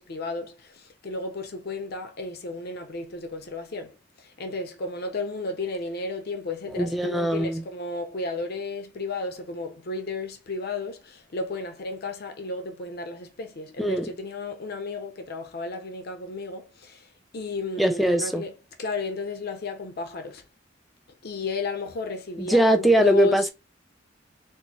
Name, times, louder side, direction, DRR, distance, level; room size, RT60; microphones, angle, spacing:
voice 1, 0.0-4.0 4.2-17.0 17.3-18.5 18.8-20.4 21.2-23.4, left 3 dB, 60° left, 0.6 m, -33 dB
voice 2, 6.7-7.6 13.8-14.1 17.8-18.4 22.4-23.5, right 1 dB, ahead, 0.4 m, -22 dB
4.4 x 2.0 x 2.8 m
head